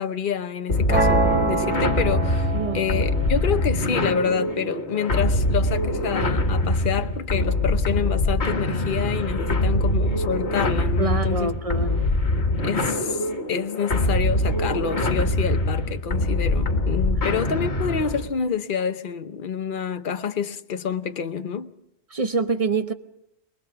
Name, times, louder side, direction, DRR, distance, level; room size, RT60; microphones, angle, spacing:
voice 1, 0.0-11.5 12.6-21.7, left 7 dB, 50° left, 1.1 m, -28 dB
sound 1, 0.7-18.3, left 1 dB, 70° left, 2.1 m, -24 dB
sound 2, 0.9-6.9, right 2 dB, 10° right, 3.4 m, -28 dB
voice 2, 2.5-2.9 11.0-12.1 22.1-22.9, right 4 dB, 35° right, 1.0 m, -26 dB
24.0 x 21.5 x 5.8 m
omnidirectional pair, 1.2 m